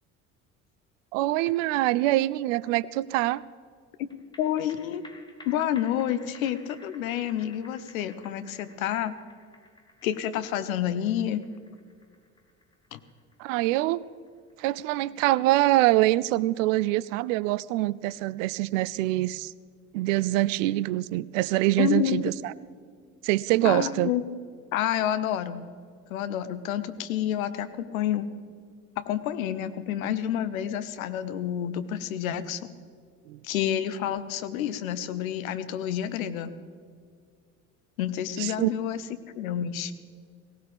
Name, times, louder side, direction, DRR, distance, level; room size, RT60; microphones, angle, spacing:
voice 1, 1.1-3.4 13.4-14.0 14.6-19.5 19.9-22.5 23.2-24.1 33.3-33.4 38.4-38.7, right 17 dB, 60° right, 20 dB, 0.5 m, -24 dB
sound 1, 4.1-16.8 17.1-17.2, left 2 dB, 10° left, 1.9 m, -55 dB
voice 2, 4.4-5.0 5.5-9.1 10.0-11.4 12.9-13.0 21.8-22.3 23.6-24.2 24.7-25.6 26.1-28.3 29.0-32.8 33.4-36.5 38.0-39.0 39.4-39.9, left 10 dB, 70° left, 12 dB, 0.9 m, -29 dB
18.0 x 17.5 x 3.5 m, 2.1 s
figure-of-eight pair, 55°, 43 cm